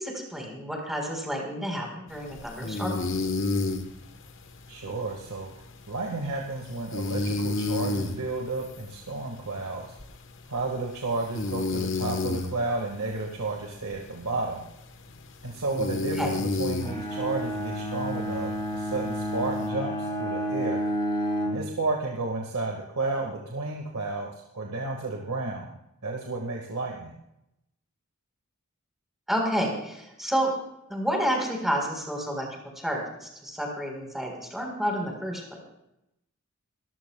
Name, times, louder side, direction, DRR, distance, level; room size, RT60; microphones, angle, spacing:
voice 1, 0.0-3.0 16.2-16.3 29.3-30.5 30.9-32.5 32.8-35.6, equal, ahead, 0 dB, 4.0 m, -30 dB
sound 1, 2.1-19.7, left 3 dB, 60° left, 1.2 m, -33 dB
voice 2, 4.7-5.5 5.9-9.9 10.5-14.6 15.4-20.8 21.5-25.7 26.0-27.1, right 3 dB, 85° right, 0 dB, 1.7 m, -32 dB
Bowed string instrument, 16.8-21.7, equal, 25° left, 2.4 m, -30 dB
28.0 x 14.5 x 2.3 m, 0.84 s
head